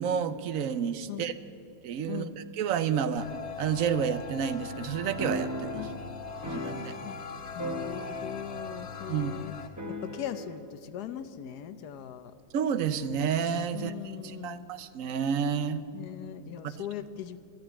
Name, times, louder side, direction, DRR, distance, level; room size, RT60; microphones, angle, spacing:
voice 1, 0.0-1.3 1.8-3.3 3.6-5.8 6.5-6.9 9.1-9.4 12.5-13.9 14.2-15.8 16.6-16.8, right 7 dB, 65° right, 13 dB, 1.0 m, -30 dB
sound 1, 3.2-9.7, left 5 dB, 50° left, 1.1 m, -40 dB
sound 2, 5.2-7.3 7.6-8.6 8.8-8.9 9.8-10.6, equal, 15° right, 0.7 m, -37 dB
voice 2, 7.5-9.5 9.9-12.3 13.7-14.7 15.9-17.4, left 10 dB, 80° left, 12 dB, 1.3 m, -40 dB
13.5 x 11.0 x 9.7 m, 2.7 s
omnidirectional pair, 1.7 m